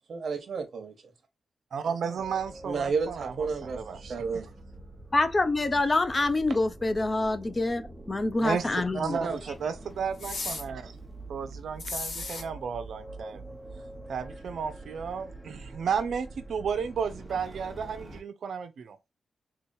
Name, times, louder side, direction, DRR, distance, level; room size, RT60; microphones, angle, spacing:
voice 1, 0.1-0.9 2.6-4.5 9.2-9.4, right 5 dB, 60° right, 1.0 m, -32 dB
voice 2, 1.7-3.3 3.6-4.1 8.4-10.9 11.3-13.4 14.1-19.0, right 6 dB, 75° right, 0.5 m, -33 dB
sound 1, 2.2-18.2, right 2 dB, 10° right, 1.0 m, -45 dB
voice 3, 5.1-9.2, left 2 dB, 30° left, 0.5 m, -26 dB
sound 2, 10.2-10.6 11.8-12.4, left 3 dB, 70° left, 1.8 m, -35 dB
3.7 x 3.0 x 2.6 m
cardioid pair, 90°, 0 cm